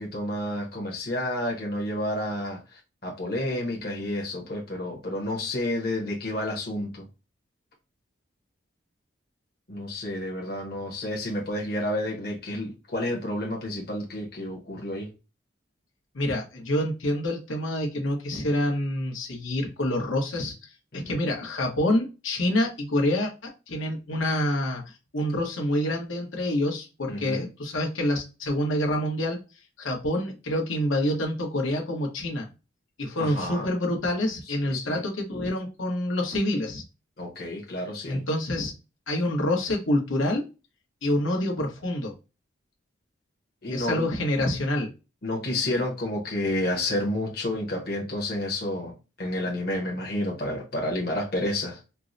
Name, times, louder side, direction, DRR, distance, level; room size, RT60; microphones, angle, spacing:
voice 1, 0.0-7.1 9.7-15.1 20.9-21.2 27.1-27.5 33.2-33.7 34.7-35.0 37.2-38.2 43.6-44.1 45.2-51.8, left 1 dB, 50° left, 0.9 m, -30 dB
voice 2, 16.1-24.8 25.1-29.4 29.8-32.5 33.0-36.8 38.1-38.7 39.1-40.4 41.0-42.1 43.7-44.9, left 1 dB, 90° left, 1.0 m, -27 dB
4.5 x 2.0 x 2.5 m
head